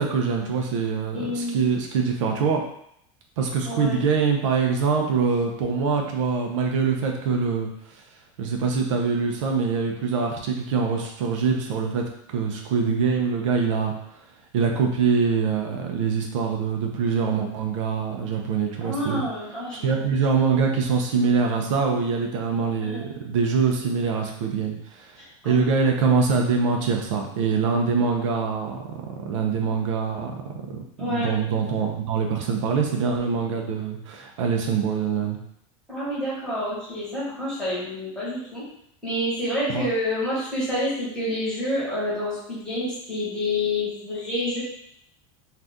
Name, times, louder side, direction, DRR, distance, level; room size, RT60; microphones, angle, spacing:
voice 1, 0.0-2.6 3.4-7.7 8.4-12.0 12.3-13.9 14.5-19.2 19.8-28.8 29.2-30.3 30.7-35.4 39.7-39.9, right 5 dB, 80° right, 2 dB, 0.6 m, -24 dB
voice 2, 1.1-1.6 3.6-4.0 18.8-19.8 22.8-23.1 25.2-25.7 31.0-31.3 35.9-38.6 39.0-44.6, left 1 dB, 5° left, -10 dB, 1.2 m, -28 dB
2.7 x 2.4 x 3.4 m, 0.73 s
supercardioid pair, 170°, 16 cm